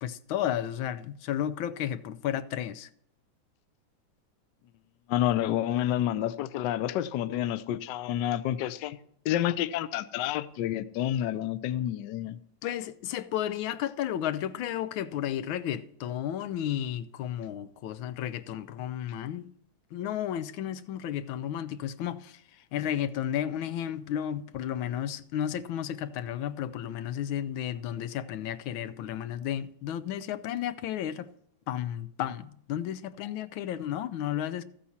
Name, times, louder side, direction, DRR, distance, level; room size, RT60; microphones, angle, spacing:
voice 1, 0.0-2.9 12.6-19.5 19.9-22.4 22.7-31.3 31.7-34.6, left 10 dB, 90° left, 1.5 m, -33 dB
voice 2, 5.1-9.0 9.2-12.4, left 12 dB, 70° left, 1.2 m, -29 dB
14.0 x 8.5 x 4.2 m
omnidirectional pair, 2.1 m